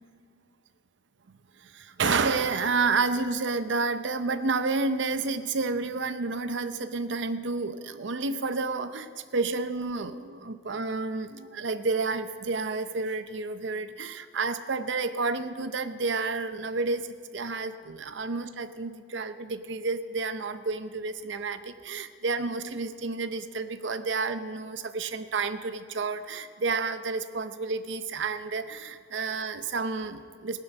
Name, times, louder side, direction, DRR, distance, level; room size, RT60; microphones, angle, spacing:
voice 1, 1.6-17.1 17.3-30.6, right 4 dB, 70° right, 11 dB, 0.7 m, -30 dB
17.0 x 11.0 x 5.4 m, 2.1 s
head